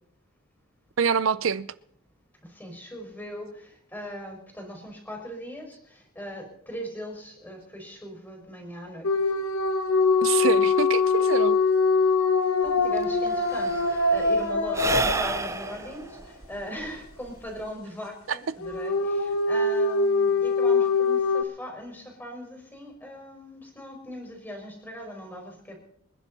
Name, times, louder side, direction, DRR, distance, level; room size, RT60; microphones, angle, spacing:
voice 1, 1.0-1.7 10.2-11.6 18.3-18.4, right 6 dB, 65° right, 0.6 m, -25 dB
voice 2, 2.4-9.3 12.4-25.8, equal, 10° left, 5.0 m, -40 dB
sound 1, 9.0-16.0 18.6-21.4, left 4 dB, 80° left, 1.3 m, -23 dB
Sigh / Breathing, 12.7-12.8 13.0-17.7, right 3 dB, 15° right, 0.5 m, -31 dB
27.5 x 10.5 x 4.2 m
head